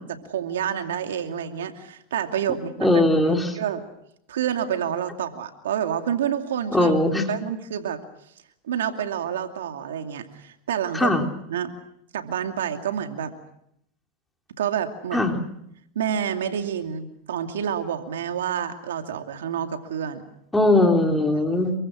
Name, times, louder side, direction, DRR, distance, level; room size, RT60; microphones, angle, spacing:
voice 1, 0.1-3.0 3.5-3.8 4.3-6.9 7.3-8.0 8.6-11.2 11.5-11.8 12.1-13.3 14.6-15.3 15.9-20.2, right 9 dB, 90° right, 6 dB, 2.5 m, -28 dB
voice 2, 2.8-3.6 6.7-7.3 10.9-11.2 15.1-15.4 20.5-21.7, left 2 dB, 5° left, 3 dB, 3.3 m, -20 dB
28.0 x 23.5 x 6.3 m, 0.75 s
supercardioid pair, 125°, 0 cm